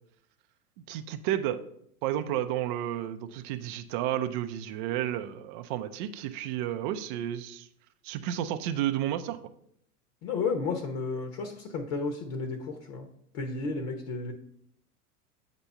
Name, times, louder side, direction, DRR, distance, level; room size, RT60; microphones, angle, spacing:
voice 1, 0.9-1.6 2.0-7.7 8.0-9.4, right 11 dB, 35° right, 8 dB, 0.5 m, -31 dB
voice 2, 10.2-13.1 13.3-14.3, left 4 dB, 45° left, 5 dB, 1.0 m, -32 dB
8.6 x 3.0 x 5.5 m, 0.69 s
figure-of-eight pair, 90°, 46 cm